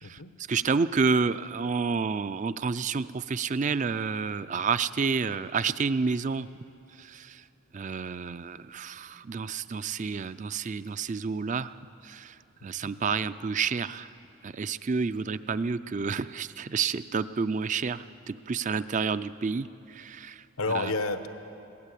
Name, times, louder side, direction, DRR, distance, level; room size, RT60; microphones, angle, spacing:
voice 1, 0.5-6.5 7.0-7.4 7.7-11.7 12.0-12.3 12.6-14.1 14.4-20.4 20.7-20.9, right 5 dB, 35° right, 14 dB, 0.4 m, -29 dB
voice 2, 12.6-12.9 20.6-21.3, left 3 dB, 85° left, 9 dB, 1.1 m, -30 dB
22.0 x 17.5 x 8.4 m, 2.8 s
head